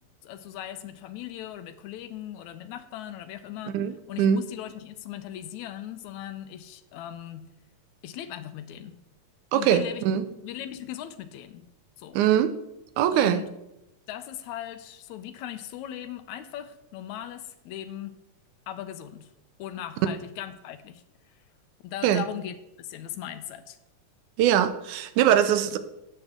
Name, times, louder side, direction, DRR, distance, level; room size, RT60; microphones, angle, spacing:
voice 1, 0.2-3.8 4.1-7.5 8.0-9.0 9.5-10.0 10.4-11.7 12.0-12.2 13.1-13.5 14.1-18.2 18.7-19.3 19.6-21.0 21.8-23.8, left 11 dB, 80° left, 11 dB, 2.0 m, -38 dB
voice 2, 3.7-4.4 9.5-10.2 12.1-12.5 13.0-13.4 22.0-22.3 24.4-25.8, right 10 dB, 90° right, 11 dB, 2.2 m, -22 dB
12.5 x 8.9 x 3.7 m, 0.90 s
omnidirectional pair, 3.4 m